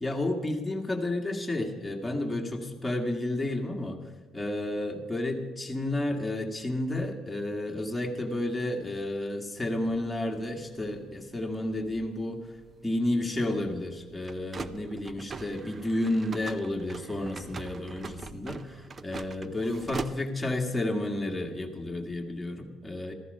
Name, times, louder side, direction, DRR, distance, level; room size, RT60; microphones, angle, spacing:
voice 1, 0.0-4.0 4.3-12.4 12.8-23.1, left 1 dB, 5° left, 2 dB, 1.7 m, -31 dB
sound 1, 9.9-20.6, right 4 dB, 25° right, 0.5 m, -43 dB
14.5 x 14.0 x 5.4 m, 1.3 s
cardioid pair, 135°, 0 cm